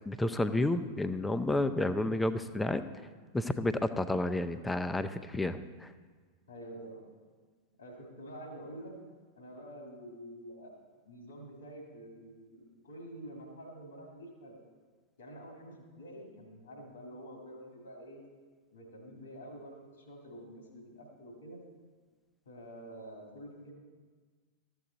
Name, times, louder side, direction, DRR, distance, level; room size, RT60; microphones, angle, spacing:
voice 1, 0.1-2.8 3.3-5.9, left 1 dB, 10° left, 11 dB, 0.5 m, -31 dB
voice 2, 6.5-7.0 7.8-9.0 9.4-10.8 11.1-14.6 15.2-18.2 18.7-21.6 22.5-23.7, right 1 dB, 70° left, 1 dB, 2.0 m, -48 dB
13.0 x 7.9 x 3.9 m, 1.5 s
figure-of-eight pair, 90°, 0 cm